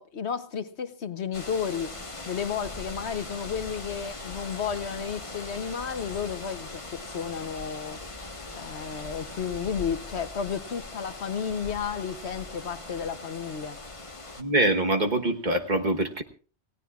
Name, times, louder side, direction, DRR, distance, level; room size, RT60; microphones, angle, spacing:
voice 1, 0.0-1.9 2.3-6.8 7.1-8.0 8.5-13.8, left 7 dB, 70° left, 10 dB, 1.2 m, -32 dB
sound 1, 1.3-14.4, left 2 dB, 30° left, 1.4 m, -40 dB
voice 2, 14.4-16.2, right 2 dB, 40° right, 4 dB, 1.4 m, -24 dB
27.5 x 17.0 x 2.4 m, 0.39 s
omnidirectional pair, 1.2 m